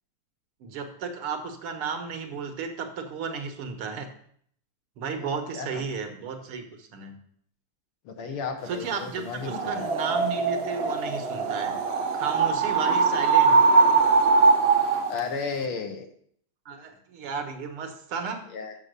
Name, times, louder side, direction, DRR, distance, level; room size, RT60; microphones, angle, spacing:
voice 1, 0.6-4.1 5.0-7.2 8.7-11.8 12.1-13.6 16.7-18.5, right 5 dB, 85° right, 5 dB, 2.1 m, -33 dB
voice 2, 5.2-5.8 8.1-9.9 15.1-16.1 18.5-18.8, left 5 dB, 75° left, 5 dB, 1.8 m, -34 dB
sound 1, 9.4-15.2, right 4 dB, 65° right, 0.6 m, -21 dB
7.0 x 7.0 x 6.6 m, 0.64 s
omnidirectional pair, 2.4 m